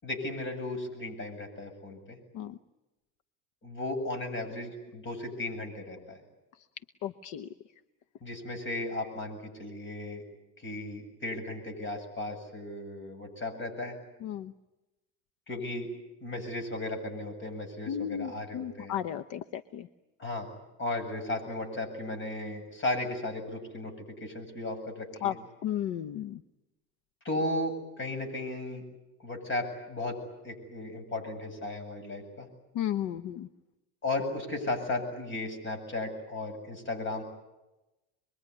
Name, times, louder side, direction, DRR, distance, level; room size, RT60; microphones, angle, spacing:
voice 1, 0.0-2.2 3.6-6.2 8.2-10.2 10.6-14.0 15.5-15.9 16.2-19.0 20.2-20.5 20.8-23.9 24.2-25.4 27.2-28.8 29.2-30.2 30.4-32.5 34.0-37.2, left 2 dB, 35° left, 5 dB, 8.0 m, -35 dB
voice 2, 7.0-7.5 14.2-14.5 17.9-19.8 25.2-25.3 25.6-26.4 32.8-33.5, left 10 dB, 60° left, 12 dB, 1.0 m, -34 dB
26.5 x 22.5 x 9.8 m, 1.0 s
supercardioid pair, 110°, 34 cm